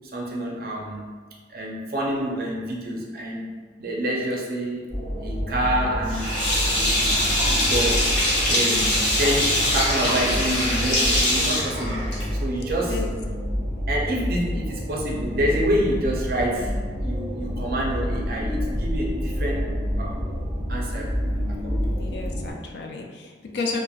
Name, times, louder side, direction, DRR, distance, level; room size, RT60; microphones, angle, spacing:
voice 1, 0.1-1.1 1.5-3.5 3.8-6.4 6.7-8.2 8.4-12.1 12.3-13.0 13.9-20.3 20.7-21.1 21.5-21.8, right 1 dB, 55° right, -2 dB, 0.5 m, -28 dB
sound 1, 4.9-22.5, equal, 5° left, 1.0 m, -28 dB
Sink (filling or washing), 6.1-12.5, left 1 dB, 90° left, 0.7 m, -23 dB
voice 2, 22.0-23.8, left 4 dB, 70° left, 2 dB, 0.4 m, -32 dB
3.2 x 2.1 x 2.3 m, 1.5 s
head